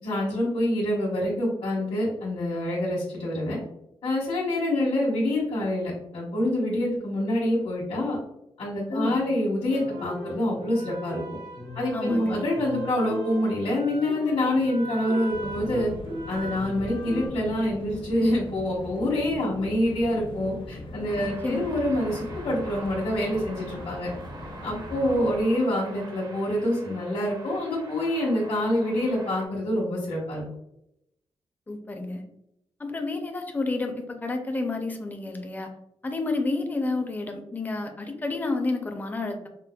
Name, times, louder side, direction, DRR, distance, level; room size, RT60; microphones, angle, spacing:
voice 1, 0.0-3.6 4.0-8.2 8.6-11.2 11.7-15.9 16.3-24.1 24.6-30.4, left 1 dB, 80° left, -8 dB, 1.1 m, -26 dB
voice 2, 8.9-9.2 11.9-12.4 21.2-21.6 31.7-32.2 32.8-35.7 36.0-39.5, left 3 dB, 15° left, 4 dB, 0.4 m, -30 dB
sound 1, 9.7-17.3, right 1 dB, 85° right, 1.0 m, -38 dB
sound 2, 15.3-25.4, left 1 dB, 55° left, 0.7 m, -40 dB
sound 3, 21.1-29.5, right 2 dB, 40° right, 0.5 m, -45 dB
5.0 x 2.0 x 2.2 m, 0.81 s
wide cardioid pair, 135°, 11 cm